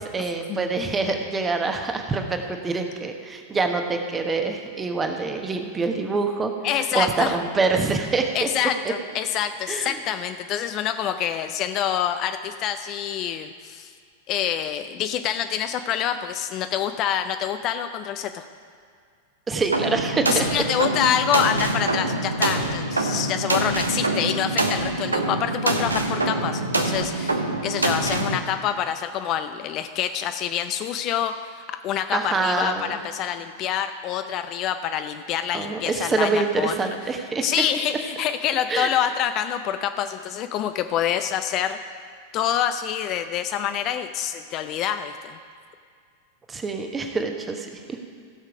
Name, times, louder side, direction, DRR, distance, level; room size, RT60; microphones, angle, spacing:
voice 1, 0.0-6.5 6.9-8.5 9.7-10.0 19.5-20.5 32.1-32.9 35.5-37.4 38.7-38.9 46.5-48.0, right 4 dB, 15° right, 4 dB, 1.1 m, -25 dB
voice 2, 6.6-7.4 8.3-13.9 14.3-18.4 20.3-36.7 37.4-41.8 42.3-45.4, left 9 dB, 35° left, 9 dB, 0.5 m, -26 dB
sound 1, 19.7-28.4, right 2 dB, 80° right, 0.9 m, -25 dB
15.5 x 6.4 x 5.0 m, 2.2 s
figure-of-eight pair, 90°, 0 cm